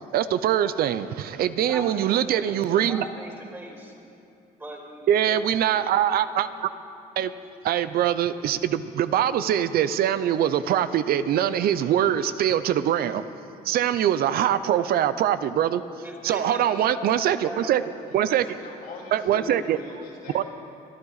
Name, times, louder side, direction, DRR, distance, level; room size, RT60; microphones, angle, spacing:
voice 1, 0.1-3.0 5.1-6.7 7.2-7.3 7.6-13.2 13.7-15.8 16.2-17.8 18.1-18.6 19.1-19.8 20.3-20.4, right 10 dB, 70° right, 13 dB, 0.6 m, -23 dB
voice 2, 1.6-2.6 2.8-3.9 4.6-5.9 16.0-17.8, equal, 15° right, -1 dB, 2.7 m, -40 dB
voice 3, 18.1-20.4, left 2 dB, 85° left, -6 dB, 4.3 m, -41 dB
23.0 x 11.5 x 4.1 m, 2.7 s
cardioid pair, 100°, 16 cm